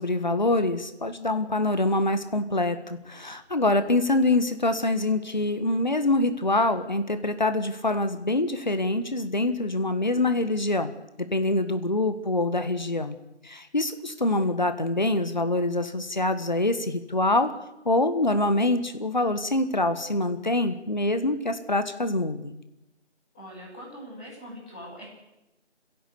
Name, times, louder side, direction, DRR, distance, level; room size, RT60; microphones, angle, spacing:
voice 1, 0.0-10.9 11.2-13.2 13.4-17.5 17.9-22.6, left 2 dB, 40° left, 10 dB, 1.7 m, -25 dB
voice 2, 23.3-25.0, equal, 5° left, -11 dB, 7.6 m, -42 dB
25.5 x 16.5 x 8.5 m, 0.95 s
figure-of-eight pair, 175°, 34 cm